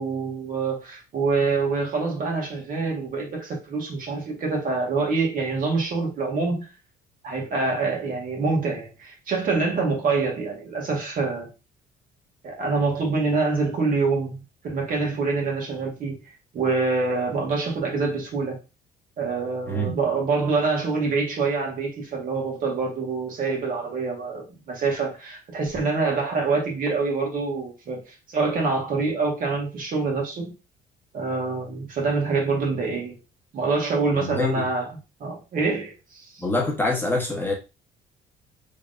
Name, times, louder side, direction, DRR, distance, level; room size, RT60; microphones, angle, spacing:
voice 1, 0.0-6.7 7.2-11.5 12.4-16.2 16.5-18.6 19.2-28.0 28.3-30.5 31.1-33.2 33.5-34.9 35.2-36.4, right 4 dB, 55° right, 1.7 m, -26 dB
voice 2, 34.1-34.7 36.4-37.5, left 2 dB, 10° left, 1.2 m, -25 dB
3.8 x 3.5 x 2.6 m
cardioid pair, 110°, 17 cm